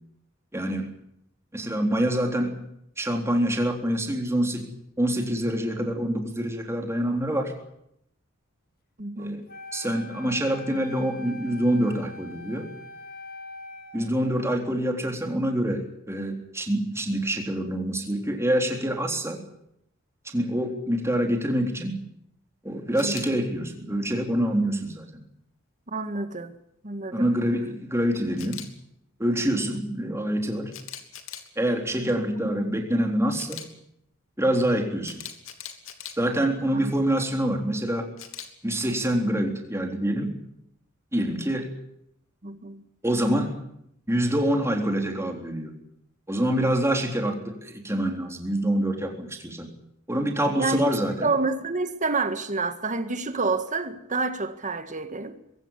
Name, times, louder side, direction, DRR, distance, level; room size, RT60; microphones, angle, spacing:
voice 1, 0.5-0.9 1.5-2.6 3.0-4.7 5.0-7.5 9.2-9.4 9.7-12.7 13.9-19.4 20.3-22.0 22.6-25.2 27.1-28.6 29.2-30.7 31.6-33.6 34.4-35.2 36.2-38.1 38.6-40.4 41.1-41.7 43.0-43.6 44.1-45.7 46.3-49.7 50.1-51.3, right 1 dB, 15° right, 3.7 m, -26 dB
voice 2, 9.0-9.4 23.0-23.2 25.9-26.5 26.8-27.3 36.8-36.9 42.4-42.8 50.6-50.8 51.2-55.3, right 3 dB, 40° right, 1.8 m, -28 dB
Wind instrument woodwind instrument, 9.5-14.6, left 2 dB, 50° left, 1.9 m, -43 dB
Camera, 23.0-23.3 28.4-28.7 30.7-31.5 33.4-33.7 35.0-36.1 38.2-38.5, left 10 dB, 85° left, 2.8 m, -39 dB
22.5 x 16.5 x 9.9 m
head